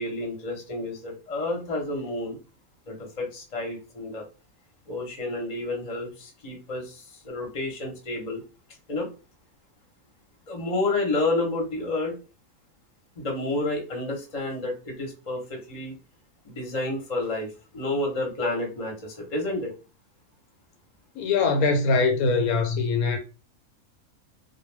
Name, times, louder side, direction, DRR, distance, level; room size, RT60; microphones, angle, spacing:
voice 1, 0.0-2.4 2.9-4.2 4.9-8.4 8.9-9.1 10.5-12.1 13.2-15.9 16.4-19.7, left 2 dB, 35° left, 0.8 m, -30 dB
voice 2, 21.1-23.2, left 4 dB, 75° left, 1.0 m, -22 dB
2.3 x 2.2 x 3.2 m
omnidirectional pair, 1.6 m